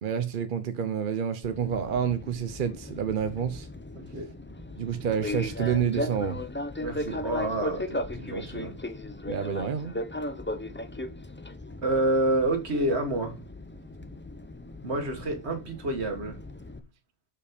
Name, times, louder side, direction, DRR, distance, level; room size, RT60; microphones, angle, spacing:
voice 1, 0.0-3.7 4.8-6.4 9.3-10.0, right 8 dB, 50° right, 0.8 m, -28 dB
Fixed-wing aircraft airplane, 1.4-16.8, left 1 dB, 15° left, 0.4 m, -37 dB
voice 2, 4.0-4.3 6.8-8.8 11.8-13.4 14.8-16.4, right 1 dB, 70° right, 1.8 m, -28 dB
6.9 x 5.2 x 5.1 m
omnidirectional pair, 1.2 m